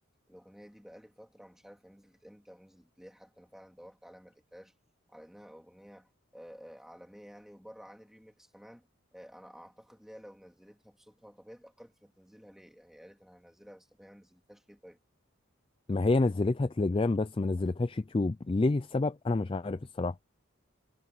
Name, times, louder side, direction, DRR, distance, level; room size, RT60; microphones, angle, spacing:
voice 1, 0.3-4.7 5.1-15.0, equal, ahead, 2.6 m, -53 dB
voice 2, 15.9-20.2, left 2 dB, 25° left, 0.3 m, -28 dB
head